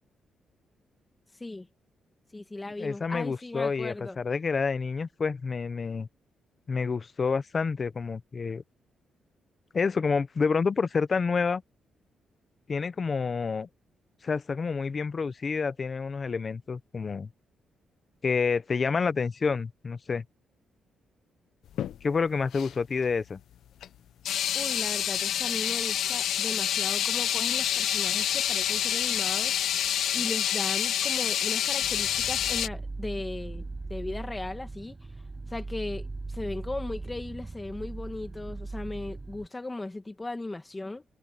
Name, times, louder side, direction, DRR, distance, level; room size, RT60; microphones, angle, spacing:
voice 1, 1.3-1.7 2.3-4.2 24.5-35.0 35.5-41.0, left 2 dB, 15° left, 1.7 m, -37 dB
voice 2, 2.8-6.1 6.7-8.6 9.7-11.6 12.7-13.7 14.2-17.3 18.2-20.2 22.0-23.4, left 5 dB, 30° left, 0.6 m, -28 dB
sound 1, 21.7-22.0 22.5-22.7 23.8-23.9 24.3-32.7, left 10 dB, 70° left, 0.6 m, -27 dB
sound 2, 31.8-39.5, right 3 dB, 15° right, 5.5 m, -39 dB
cardioid pair, 165°, 0 cm